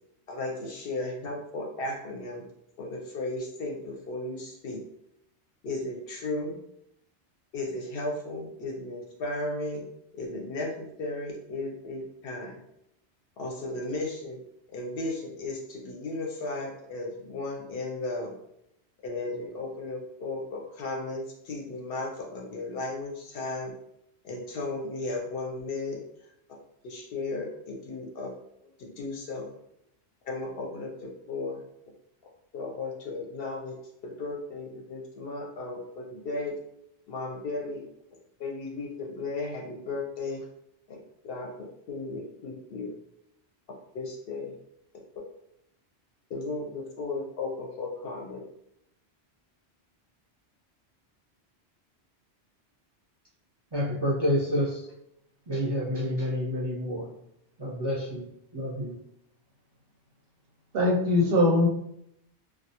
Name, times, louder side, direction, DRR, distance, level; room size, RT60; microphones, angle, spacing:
voice 1, 0.3-2.4 2.8-4.8 5.6-6.6 7.5-9.9 10.1-12.6 13.4-14.4 14.7-18.4 19.0-23.7 24.2-26.0 26.8-28.3 28.6-29.5 30.2-31.6 32.5-33.8 34.0-36.6 37.1-37.8 38.4-40.4 40.9-41.0 41.2-42.9 43.9-44.6 46.3-48.4, left 2 dB, 65° left, 0 dB, 0.7 m, -35 dB
voice 2, 53.7-54.9 55.5-57.1 57.6-58.3 58.5-59.0, equal, 30° right, -6 dB, 0.5 m, -28 dB
voice 3, 60.7-61.7, left 1 dB, 65° right, -1 dB, 0.7 m, -21 dB
2.3 x 2.1 x 2.8 m, 0.76 s
omnidirectional pair, 1.1 m